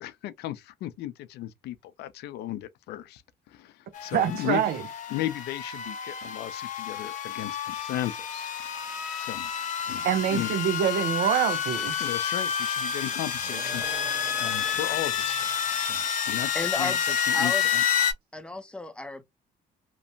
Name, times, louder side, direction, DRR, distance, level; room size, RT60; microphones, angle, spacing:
voice 1, 0.0-3.2 3.5-4.6 5.1-8.5 8.8-9.5 9.9-10.5 12.0-15.5 15.8-17.8, left 13 dB, 75° left, 0.5 m, -36 dB
sound 1, 3.9-18.1, left 8 dB, 50° left, 0.9 m, -29 dB
voice 2, 4.1-4.8 10.0-12.1, right 10 dB, 65° right, 0.5 m, -25 dB
sound 2, 13.3-15.7, right 4 dB, 25° right, 1.4 m, -44 dB
voice 3, 16.5-17.0 17.3-17.7 18.3-19.2, left 2 dB, 5° left, 0.5 m, -33 dB
3.0 x 2.1 x 2.6 m
cardioid pair, 110°, 17 cm